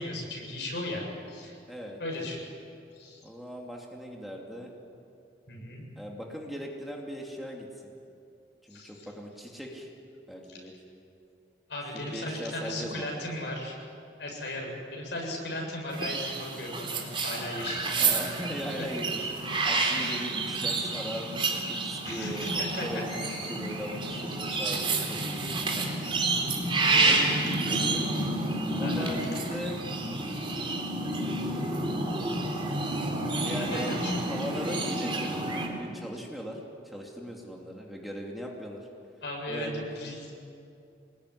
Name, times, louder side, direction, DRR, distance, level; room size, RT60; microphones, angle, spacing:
voice 1, 0.0-1.6 2.0-2.4 2.9-3.2 5.5-5.9 8.7-9.1 10.5-10.6 11.7-13.8 14.2-18.1 18.8-18.9 20.0-20.1 22.0-22.9 26.9-27.2 28.8-29.2 33.6-34.3 39.2-39.7 40.0-40.3, left 1 dB, 70° left, 0 dB, 7.8 m, -36 dB
voice 2, 1.7-2.0 3.2-4.7 6.0-7.9 8.6-9.9 10.3-10.7 11.9-13.2 17.9-26.1 27.0-28.1 28.7-29.8 30.9-31.9 33.4-33.9 34.3-36.6 36.8-38.9 39.5-39.8, equal, ahead, -1 dB, 2.7 m, -39 dB
sound 1, 15.9-35.7, right 2 dB, 30° right, 3.8 m, -29 dB
26.5 x 21.0 x 10.0 m, 2.5 s
head